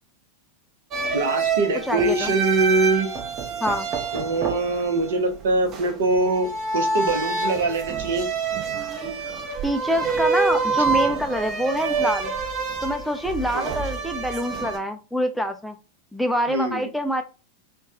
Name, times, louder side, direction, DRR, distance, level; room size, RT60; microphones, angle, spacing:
sound 1, 0.9-14.8, right 4 dB, 30° right, 0.7 m, -27 dB
voice 1, 1.1-3.1 4.1-6.5 6.7-8.3 13.5-13.8 16.5-16.9, right 3 dB, 65° right, 5 dB, 0.8 m, -23 dB
voice 2, 1.9-2.3 3.6-3.9 9.6-12.3 12.8-15.8 16.1-17.2, equal, ahead, 5 dB, 0.4 m, -25 dB
4.4 x 2.2 x 2.7 m, 0.32 s
figure-of-eight pair, 90°, 0 cm